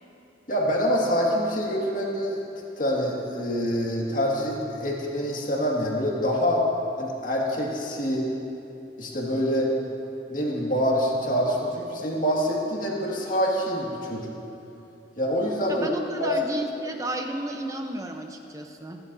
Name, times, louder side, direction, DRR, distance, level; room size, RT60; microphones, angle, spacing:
voice 1, 0.5-2.4 2.8-6.7 7.0-8.3 9.0-9.7 10.3-14.3 15.2-15.9 16.2-16.4, equal, 45° left, -3 dB, 2.0 m, -25 dB
voice 2, 15.7-19.0, right 1 dB, 15° right, 4 dB, 0.8 m, -33 dB
26.0 x 11.0 x 2.7 m, 2.9 s
head